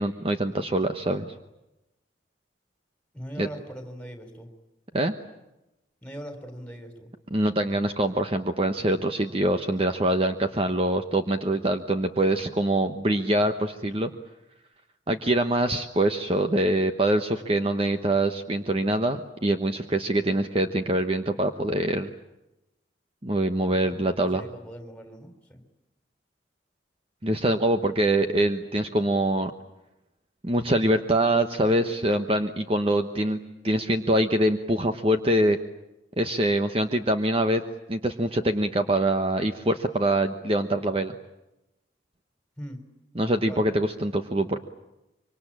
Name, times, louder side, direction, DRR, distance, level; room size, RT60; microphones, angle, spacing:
voice 1, 0.0-1.3 3.4-3.5 4.9-5.1 7.3-14.1 15.1-22.1 23.2-24.4 27.2-29.5 30.4-33.4 33.6-35.6 36.2-37.6 37.9-41.2 43.2-44.6, right 1 dB, 30° right, 7 dB, 1.1 m, -24 dB
voice 2, 3.1-4.5 6.0-7.1 23.8-25.7 42.6-42.9 43.4-43.7, equal, 5° left, 6 dB, 3.6 m, -41 dB
25.5 x 24.5 x 8.8 m, 0.95 s
head